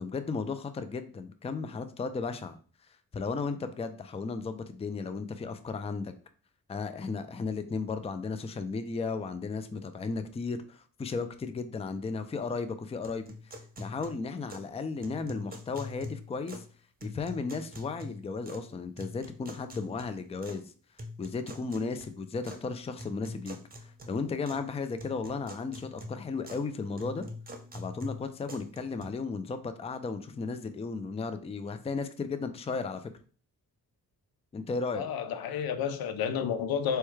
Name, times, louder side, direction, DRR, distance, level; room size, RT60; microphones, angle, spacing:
voice 1, 0.0-2.6 3.1-6.1 6.7-16.6 17.0-20.6 21.2-27.3 27.7-33.1 34.5-35.0, left 4 dB, 15° left, 0.4 m, -35 dB
sound 1, 13.0-14.7 15.0-16.7 17.0-18.7 19.0-20.6 21.0-22.6 23.0-24.7 25.0-26.7 27.0-29.1, left 1 dB, 25° right, 0.8 m, -44 dB
voice 2, 34.9-37.0, left 7 dB, 75° left, 0.5 m, -31 dB
4.4 x 2.3 x 3.1 m
cardioid pair, 55°, 37 cm